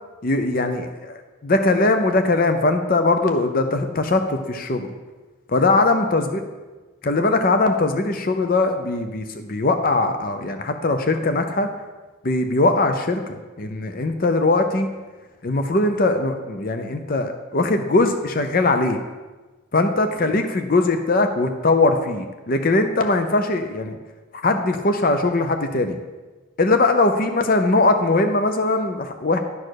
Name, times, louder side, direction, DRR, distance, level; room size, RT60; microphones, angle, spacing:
voice 1, 0.2-4.9 5.5-6.4 7.0-11.7 12.2-14.9 15.4-19.0 19.7-24.0 24.4-26.0 26.6-29.4, left 2 dB, 45° left, 7 dB, 0.6 m, -20 dB
11.0 x 4.3 x 6.5 m, 1.2 s
head